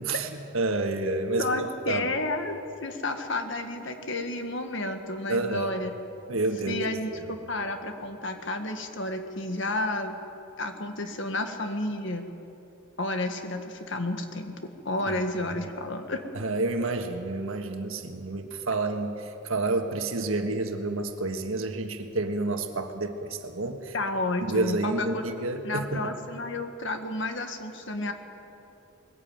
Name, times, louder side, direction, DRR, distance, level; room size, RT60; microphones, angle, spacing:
voice 1, 0.0-2.0 5.3-5.7 6.3-6.8 7.1-7.3 15.1-15.5 16.3-23.9 24.4-26.1, right 2 dB, 70° right, 6 dB, 1.5 m, -29 dB
voice 2, 1.4-2.6 2.8-5.9 6.7-10.2 10.6-12.3 13.0-14.6 14.9-16.2 23.9-25.2 25.6-28.1, left 2 dB, 55° left, 6 dB, 1.7 m, -31 dB
20.5 x 15.0 x 8.9 m, 2.9 s
head